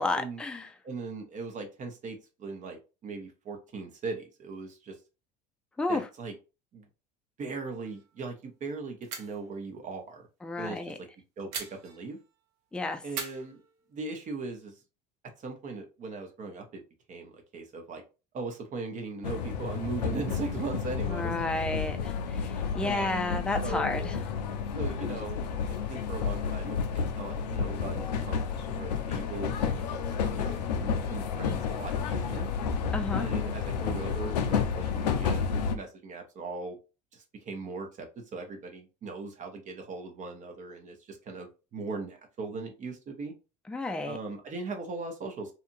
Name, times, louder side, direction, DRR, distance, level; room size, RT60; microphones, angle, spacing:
voice 1, 0.0-0.7 5.8-6.0 10.4-11.0 12.7-13.0 21.1-24.1 32.9-33.2 43.7-44.2, left 2 dB, 5° left, 6 dB, 0.4 m, -31 dB
voice 2, 0.8-5.0 5.9-6.3 6.7-6.9 7.4-10.3 10.6-11.1 11.4-12.2 13.0-13.6 13.9-14.7 15.4-16.8 17.1-18.0 18.3-21.4 22.8-23.9 24.8-25.4 25.9-29.5 29.9-30.0 30.3-32.5 33.2-35.4 35.7-36.8 37.1-43.3 44.0-45.5, right 3 dB, 35° right, 4 dB, 0.7 m, -39 dB
sound 1, 7.8-8.2 8.4-8.5 9.0-9.5 11.5-12.4 13.1-14.2, right 5 dB, 70° right, 0.8 m, -42 dB
sound 2, 19.2-35.7, left 6 dB, 80° left, 0.4 m, -31 dB
2.8 x 2.5 x 2.5 m, 0.31 s
hypercardioid pair, 70°, 21 cm